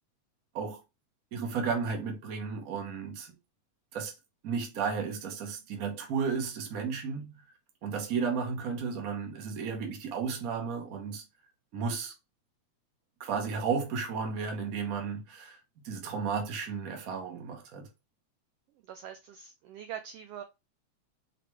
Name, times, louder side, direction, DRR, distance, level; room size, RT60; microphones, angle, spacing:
voice 1, 1.3-3.3 3.9-4.1 4.4-7.3 7.8-11.2 11.7-12.1 13.2-15.6 15.8-17.9, right 5 dB, 65° right, 0.8 m, -33 dB
voice 2, 18.8-20.4, right 9 dB, 90° right, 1.3 m, -43 dB
5.1 x 2.9 x 3.2 m
omnidirectional pair, 3.3 m